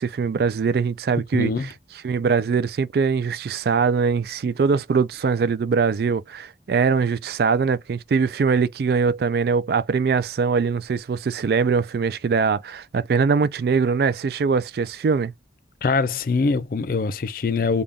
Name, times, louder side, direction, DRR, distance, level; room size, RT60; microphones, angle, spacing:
voice 1, 0.0-1.7 2.0-15.3, right 5 dB, 55° right, 0.3 m, -22 dB
voice 2, 1.3-1.7 15.8-17.8, left 4 dB, 50° left, 0.4 m, -23 dB
3.5 x 2.3 x 3.6 m
head